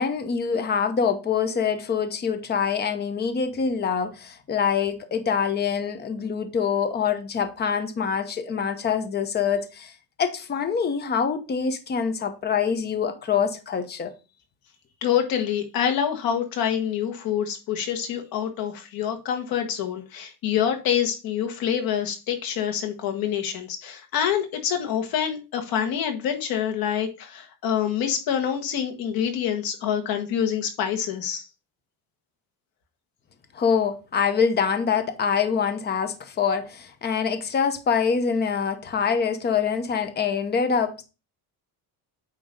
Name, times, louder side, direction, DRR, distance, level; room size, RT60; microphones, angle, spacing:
voice 1, 0.0-14.1 33.5-41.0, left 6 dB, 25° left, 0.8 m, -25 dB
voice 2, 15.0-31.5, left 9 dB, 65° left, 1.6 m, -26 dB
8.7 x 3.0 x 5.2 m
cardioid pair, 155°, 38 cm